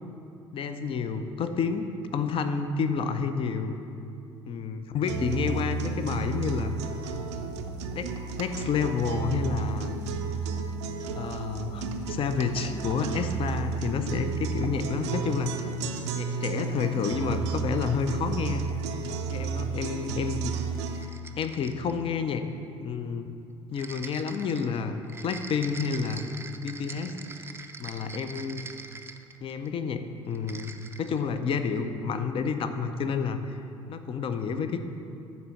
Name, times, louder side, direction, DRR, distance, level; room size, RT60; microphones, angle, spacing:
voice 1, 0.5-3.8 4.5-6.7 7.9-8.1 8.4-9.9 11.1-15.5 16.1-18.7 19.3-20.5 21.4-22.5 22.8-23.3 23.7-26.3 26.6-27.1 27.8-28.6 29.4-30.7 31.0-33.6 33.9-34.8, left 5 dB, 40° left, 9 dB, 0.5 m, -29 dB
sound 1, 5.0-21.0, right 5 dB, 70° right, 0.6 m, -32 dB
sound 2, 20.7-22.0 23.8-29.7 30.3-31.2, right 3 dB, 15° right, 0.5 m, -43 dB
9.5 x 4.3 x 5.7 m, 2.6 s
figure-of-eight pair, 55°, 15 cm